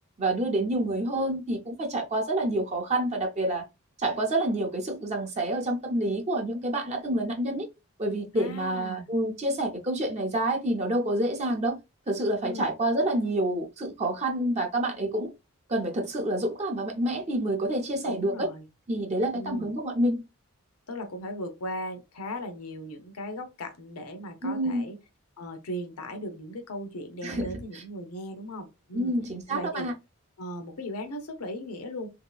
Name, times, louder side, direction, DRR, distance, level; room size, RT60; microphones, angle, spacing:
voice 1, 0.2-3.6 4.0-7.7 8.0-11.8 12.1-15.3 15.7-18.5 18.9-20.2 24.4-24.8 27.2-27.8 28.9-29.9, right 1 dB, 30° right, 0.5 m, -28 dB
voice 2, 8.4-9.1 12.4-12.7 18.0-18.7 19.3-19.7 20.9-25.0 25.4-29.1 29.5-29.9 30.4-32.1, left 1 dB, 90° left, 0.7 m, -37 dB
3.0 x 2.7 x 2.3 m
head